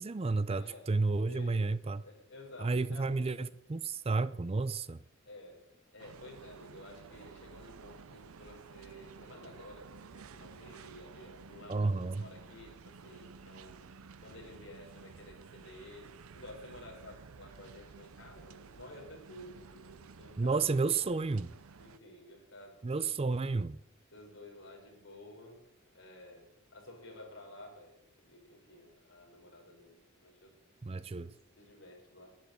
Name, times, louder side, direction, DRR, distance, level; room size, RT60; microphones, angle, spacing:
voice 1, 0.0-2.0 2.6-5.0 11.7-12.3 20.4-21.5 22.8-23.8 30.8-31.3, right 3 dB, 30° right, 0.4 m, -31 dB
voice 2, 0.6-0.9 1.3-1.7 2.0-3.1 5.3-13.8 14.2-20.9 21.8-23.3 24.1-25.6 25.9-30.5 31.0-32.4, left 1 dB, 65° left, 5.8 m, -52 dB
sound 1, 6.0-22.0, right 5 dB, 85° right, 0.6 m, -53 dB
11.5 x 10.5 x 9.2 m
head